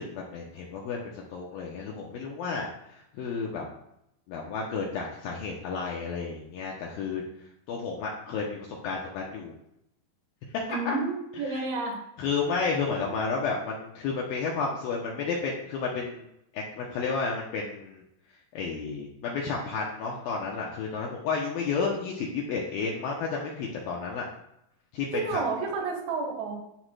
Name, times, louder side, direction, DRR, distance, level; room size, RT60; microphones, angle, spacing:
voice 1, 0.0-3.7 4.3-7.2 7.7-9.5 10.9-11.0 11.5-11.6 12.2-16.3 16.5-18.0 18.5-24.2 24.9-25.1 25.3-25.4, left 4 dB, 80° left, -2 dB, 2.1 m, -32 dB
voice 2, 10.7-12.0 25.1-26.6, right 4 dB, 90° right, 1 dB, 3.7 m, -30 dB
14.0 x 4.7 x 2.2 m, 0.80 s
omnidirectional pair, 5.1 m